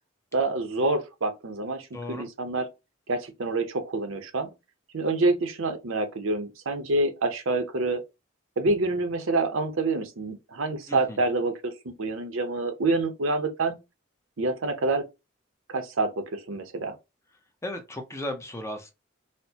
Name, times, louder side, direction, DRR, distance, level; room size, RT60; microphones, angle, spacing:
voice 1, 0.3-2.7 3.1-4.5 4.9-8.0 8.6-11.7 12.0-13.8 14.4-15.1 15.7-17.0, right 2 dB, 75° right, 0.7 m, -27 dB
voice 2, 1.9-2.3 10.9-11.2 17.6-18.9, left 1 dB, 15° left, 0.6 m, -35 dB
4.2 x 2.1 x 2.8 m
head